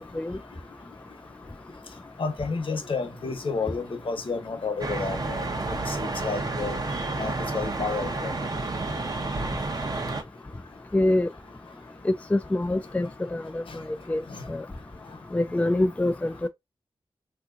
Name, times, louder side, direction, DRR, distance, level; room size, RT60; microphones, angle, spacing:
voice 1, 2.2-5.4 5.9-6.8 7.2-8.3 14.3-14.4, left 4 dB, 65° left, 0.9 m, -31 dB
sound 1, 4.8-10.2, right 2 dB, 40° right, 0.8 m, -30 dB
voice 2, 10.9-11.3 12.0-13.6 13.9-14.2 14.5-14.6 15.3-16.3, left 1 dB, 15° left, 0.3 m, -25 dB
3.5 x 2.8 x 2.5 m
cardioid pair, 60°, 10 cm